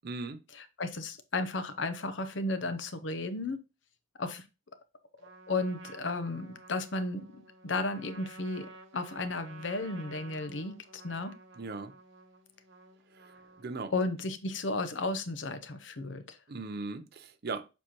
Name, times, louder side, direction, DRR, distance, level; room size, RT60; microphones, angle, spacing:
voice 1, 0.0-0.4 11.6-11.9 13.1-13.9 16.5-17.7, right 3 dB, 55° right, 0.6 m, -39 dB
voice 2, 0.6-3.6 4.2-4.4 5.5-7.3 7.6-11.3 13.9-16.4, left 2 dB, 65° left, 0.8 m, -34 dB
Trumpet, 5.2-13.9, right 3 dB, 75° right, 1.2 m, -52 dB
7.2 x 4.5 x 3.0 m
head